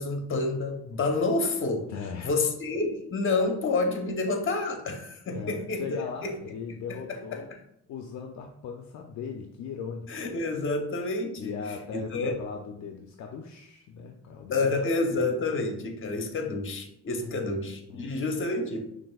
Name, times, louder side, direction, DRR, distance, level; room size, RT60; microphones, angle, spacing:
voice 1, 0.0-1.9 2.2-6.0 7.1-7.4 10.1-11.5 11.9-12.3 14.5-18.8, left 3 dB, 45° left, 4 dB, 0.9 m, -28 dB
voice 2, 1.9-2.3 5.3-7.5 7.9-10.3 11.3-15.1 15.4-15.7 17.1-17.5 17.9-18.1, left 6 dB, 65° left, 3 dB, 0.5 m, -39 dB
6.0 x 2.6 x 2.3 m, 0.74 s
cardioid pair, 90°, 30 cm